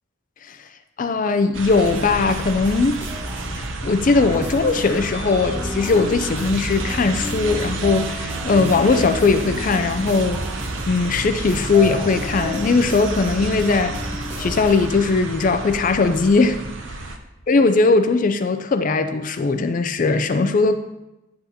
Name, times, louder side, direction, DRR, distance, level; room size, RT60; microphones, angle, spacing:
voice 1, 1.0-3.0 3.6-10.4 10.9-13.9 14.4-16.6 16.9-17.0 17.5-20.8, left 4 dB, 40° left, 8 dB, 0.4 m, -19 dB
sound 1, 1.5-17.2, right 3 dB, 60° right, 0.7 m, -31 dB
sound 2, 1.7-3.8 4.1-14.9, equal, 10° right, 0.9 m, -35 dB
sound 3, 4.2-14.6, equal, 40° right, 1.5 m, -35 dB
9.7 x 7.9 x 2.8 m, 0.96 s
head